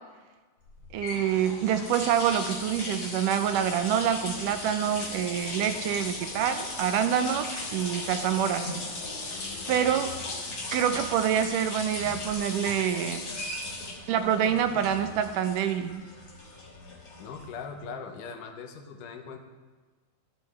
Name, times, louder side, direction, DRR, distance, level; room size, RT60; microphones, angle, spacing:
sound 1, 0.7-17.7, left 2 dB, 40° left, 3.2 m, -37 dB
voice 1, 0.9-8.7 9.7-10.1 10.7-13.2 14.1-16.0, right 9 dB, 85° right, 9 dB, 2.2 m, -26 dB
sound 2, 2.3-10.5, left 2 dB, 60° left, 2.8 m, -49 dB
voice 2, 9.3-9.9 17.2-19.4, left 5 dB, 80° left, 5 dB, 2.5 m, -41 dB
13.0 x 13.0 x 3.3 m, 1.4 s
omnidirectional pair, 3.8 m